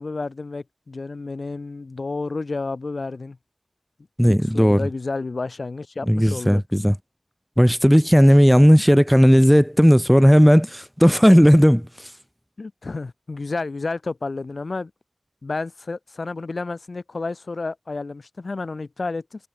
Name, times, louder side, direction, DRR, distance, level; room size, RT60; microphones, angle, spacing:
voice 1, 0.0-3.4 4.3-6.6 12.6-14.9 15.4-19.5, left 3 dB, 70° left, 1.4 m, -31 dB
voice 2, 4.2-4.9 6.1-7.0 7.6-11.8, equal, ahead, 1.9 m, -15 dB
wide cardioid pair, 65°, 0 cm